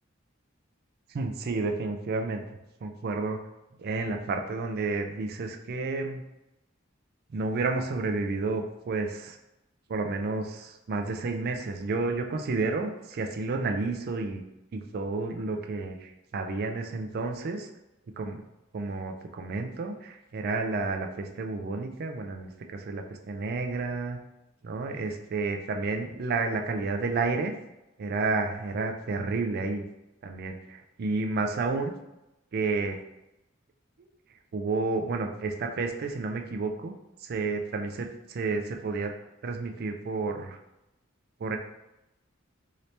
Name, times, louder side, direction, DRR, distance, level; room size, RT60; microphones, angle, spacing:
voice 1, 1.1-2.4 2.8-3.4 3.8-6.2 7.3-9.4 9.9-14.4 14.7-17.7 18.2-18.4 18.7-24.2 24.6-27.5 28.0-29.8 30.2-31.9 32.5-33.0 34.0-34.1 34.5-36.9 37.2-39.1 39.4-40.6 41.4-41.6, right 3 dB, 50° right, 4 dB, 0.4 m, -31 dB
2.9 x 2.7 x 3.2 m, 0.92 s
head